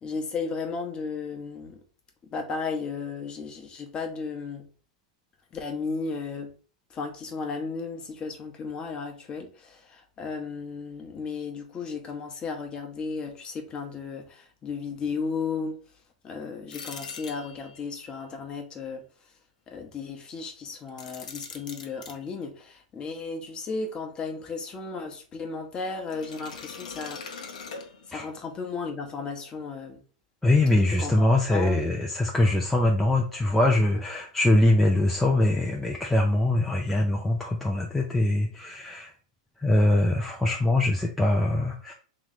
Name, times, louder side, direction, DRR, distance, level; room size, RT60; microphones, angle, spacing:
voice 1, 0.0-1.8 2.3-4.7 5.5-6.5 6.9-15.7 16.2-19.0 19.7-27.4 28.1-30.0 30.9-31.9, left 4 dB, 25° left, 0.9 m, -34 dB
sound 1, 16.7-17.9 20.9-22.2 26.1-28.4, left 5 dB, 90° left, 0.8 m, -41 dB
voice 2, 30.4-39.1 39.6-41.9, left 1 dB, 5° left, 0.5 m, -23 dB
3.1 x 3.1 x 3.8 m
supercardioid pair, 140°, 4 cm